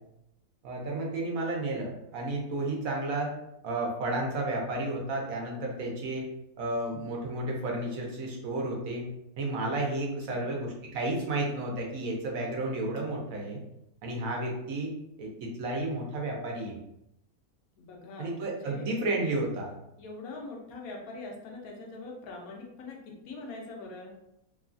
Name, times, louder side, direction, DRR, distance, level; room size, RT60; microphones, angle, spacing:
voice 1, 0.6-3.3 3.6-6.3 6.6-9.1 9.4-13.6 14.0-14.9 15.2-16.8 18.2-19.7, right 2 dB, 70° right, -1 dB, 1.1 m, -32 dB
voice 2, 17.8-18.8 20.0-24.2, left 3 dB, 80° left, 0 dB, 1.1 m, -43 dB
3.0 x 2.3 x 2.4 m, 0.83 s
omnidirectional pair, 1.5 m